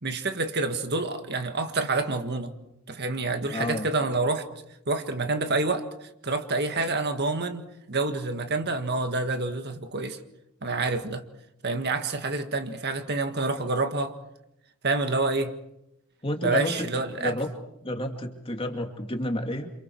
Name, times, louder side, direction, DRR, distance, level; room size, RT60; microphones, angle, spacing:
voice 1, 0.0-2.5 2.9-4.5 4.9-10.2 10.6-11.2 11.6-14.1 14.8-15.5 16.4-17.4, right 3 dB, 45° right, 1.7 m, -28 dB
voice 2, 3.5-3.9 16.2-16.9 17.2-17.5 17.8-19.7, left 1 dB, 25° left, 2.4 m, -30 dB
29.5 x 27.0 x 4.7 m
head